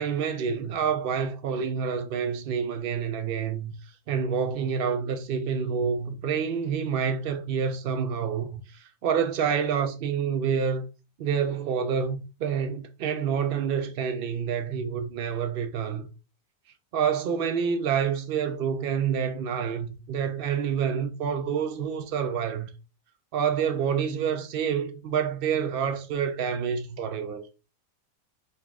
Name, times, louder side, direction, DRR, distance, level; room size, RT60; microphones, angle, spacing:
voice 1, 0.0-3.7 4.1-10.9 11.2-16.1 16.9-22.7 23.3-27.5, right 7 dB, 85° right, 0.5 m, -28 dB
4.0 x 2.4 x 3.4 m
omnidirectional pair, 1.5 m